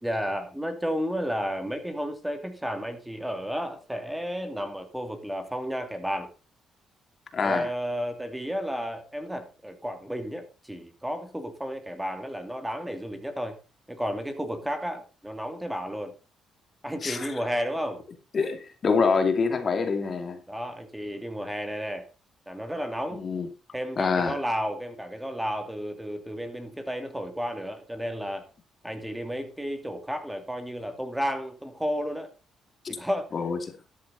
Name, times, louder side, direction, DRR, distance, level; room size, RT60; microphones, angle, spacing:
voice 1, 0.0-6.3 7.4-13.6 13.9-16.1 16.8-18.0 20.5-22.1 22.5-23.2 23.7-28.5 28.8-32.3 32.9-33.3, equal, 5° right, 2.7 m, -32 dB
voice 2, 7.3-7.7 17.0-17.3 18.3-20.4 23.2-23.5 24.0-24.4 32.8-33.0 33.3-33.6, left 5 dB, 45° left, 2.6 m, -25 dB
13.0 x 10.5 x 4.1 m
cardioid pair, 90°, 0 cm